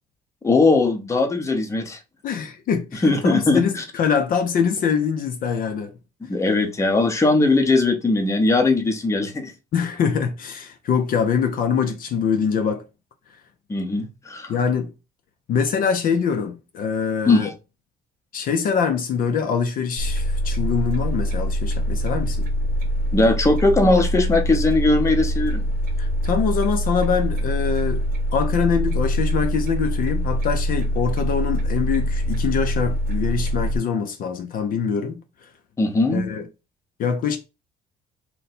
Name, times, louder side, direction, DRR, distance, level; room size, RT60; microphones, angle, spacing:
voice 1, 0.4-2.0 3.0-3.8 6.3-9.5 13.7-14.5 17.3-17.5 23.1-25.6 35.8-36.3, left 2 dB, 15° left, 0.7 m, -19 dB
voice 2, 2.2-5.9 9.7-12.8 14.5-14.9 15.5-17.5 18.3-22.5 26.0-28.0 28.3-35.2 36.1-36.5 37.0-37.4, left 6 dB, 55° left, 0.5 m, -24 dB
sound 1, 20.0-33.8, equal, 60° right, 1.0 m, -24 dB
2.7 x 2.2 x 4.1 m
cardioid pair, 110°, 17 cm